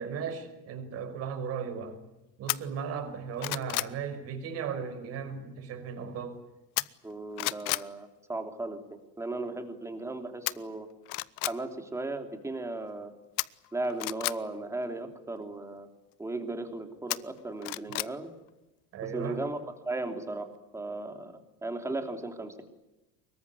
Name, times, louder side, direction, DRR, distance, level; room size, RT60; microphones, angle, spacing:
voice 1, 0.0-2.0 2.4-6.4 18.9-19.4, right 6 dB, 45° right, 9 dB, 5.5 m, -36 dB
sound 1, 2.5-2.6 3.1-4.0 6.8-7.1 7.4-7.9 10.5-10.6 11.0-11.6 13.4-14.4 17.1-18.1 18.5-18.6, left 24 dB, 70° left, 0.9 m, -31 dB
voice 2, 7.0-8.8 9.2-10.9 11.4-13.1 13.7-15.9 16.2-18.3 19.0-19.6 19.8-20.5 20.7-22.6, right 2 dB, 10° right, 6 dB, 3.1 m, -36 dB
24.5 x 22.5 x 9.7 m, 0.98 s
cardioid pair, 165°, 34 cm